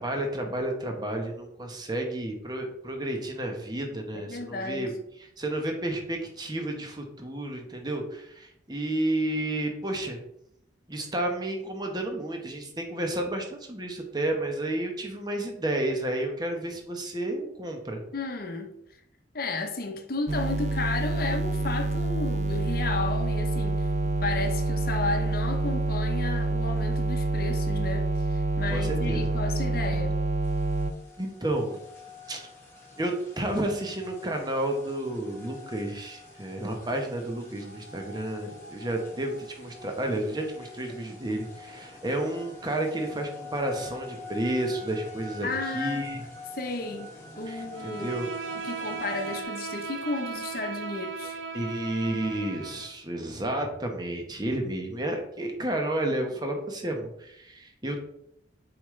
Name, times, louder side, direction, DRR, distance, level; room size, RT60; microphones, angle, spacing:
voice 1, 0.0-4.9 5.4-10.2 10.9-18.0 28.7-29.3 31.2-31.7 32.3-32.4 33.0-45.5 45.7-46.2 47.5-48.3 51.5-58.0, right 1 dB, 20° right, 1.0 m, -31 dB
voice 2, 4.1-4.9 18.1-18.7 19.3-30.2 45.4-46.0 46.5-47.1 47.4-48.1 48.6-51.4, left 3 dB, 50° left, 0.8 m, -33 dB
sound 1, 20.3-30.9, right 2 dB, 35° right, 0.4 m, -27 dB
sound 2, 30.4-49.4, left 4 dB, 15° left, 1.7 m, -45 dB
Bowed string instrument, 47.7-52.9, right 4 dB, 90° right, 0.6 m, -37 dB
7.3 x 4.9 x 3.2 m
head